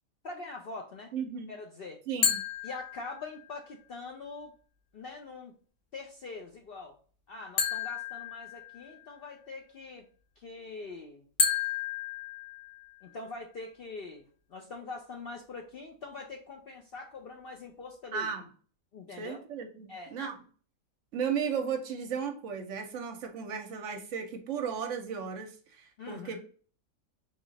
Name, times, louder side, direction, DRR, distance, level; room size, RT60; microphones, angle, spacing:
voice 1, 0.2-1.1 1.5-2.0 2.6-4.5 4.9-5.5 5.9-7.0 7.3-10.1 10.4-11.3 13.0-18.3 18.9-19.4 19.9-20.1 26.0-26.4, left 3 dB, 60° left, 0.6 m, -43 dB
voice 2, 1.1-1.5 2.1-2.4 18.1-18.5 19.2-20.4 21.1-26.5, right 6 dB, 65° right, 0.9 m, -35 dB
sound 1, 2.2-3.5 7.6-9.1 11.4-13.1, left 6 dB, 80° left, 1.3 m, -32 dB
3.8 x 2.4 x 3.8 m
omnidirectional pair, 1.5 m